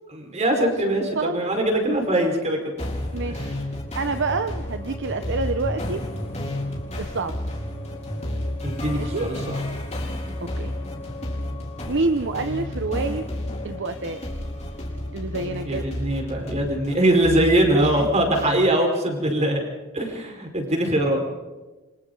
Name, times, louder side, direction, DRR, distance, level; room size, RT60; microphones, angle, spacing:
voice 1, 0.3-2.7 8.6-9.6 15.6-19.6 19.9-21.2, right 1 dB, 35° right, 2 dB, 5.2 m, -22 dB
sound 1, 2.8-18.7, left 1 dB, 30° left, 4.4 m, -31 dB
voice 2, 3.1-3.5 3.9-6.0 7.0-7.4 8.9-9.3 10.4-10.7 11.9-13.3 13.6-14.2 15.1-15.8 17.7-18.0, right 3 dB, 60° right, 8 dB, 1.0 m, -27 dB
28.5 x 25.0 x 4.0 m, 1.2 s
head